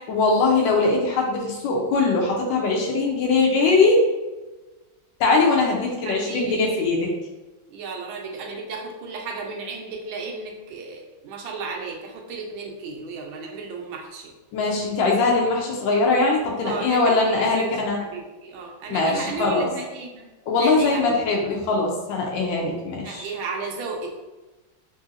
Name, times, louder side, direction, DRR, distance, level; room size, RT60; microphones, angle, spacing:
voice 1, 0.1-4.0 5.2-7.1 14.5-18.0 18.9-19.7 20.5-23.3, left 3 dB, 80° left, -1 dB, 1.3 m, -21 dB
voice 2, 6.1-7.1 7.7-14.3 16.6-17.6 18.0-20.3 20.5-21.2 23.0-24.2, right 4 dB, 85° right, 0 dB, 1.4 m, -34 dB
3.7 x 2.7 x 2.4 m, 1.1 s
omnidirectional pair, 2.1 m